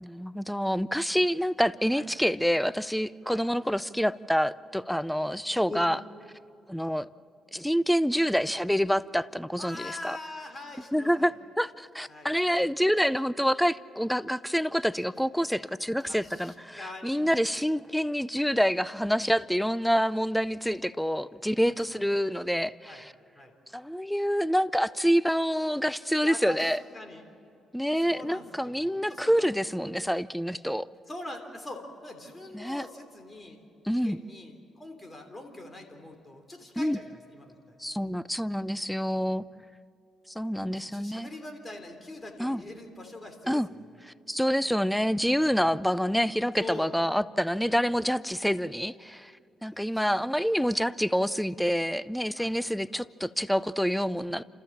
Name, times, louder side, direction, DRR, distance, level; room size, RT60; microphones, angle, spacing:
voice 1, 0.0-6.0 6.7-7.1 7.5-10.2 10.9-23.1 23.7-26.8 27.7-30.9 32.5-32.9 33.9-34.2 36.8-37.0 37.8-39.4 40.3-41.3 42.4-42.6 43.5-43.7 44.3-49.3 49.6-54.4, equal, ahead, 17 dB, 0.5 m, -27 dB
voice 2, 9.6-11.3 12.1-12.3 15.6-15.7 16.0-17.3 21.5-21.7 22.9-23.0 23.4-23.5 26.2-27.2 27.9-29.5 31.1-33.6 33.9-37.8 40.7-43.6 45.3-45.7 46.6-47.0 49.9-50.1 52.4-52.5, left 2 dB, 20° left, 5 dB, 3.3 m, -43 dB
29.0 x 14.0 x 7.2 m, 2.6 s
cardioid pair, 90°, 0 cm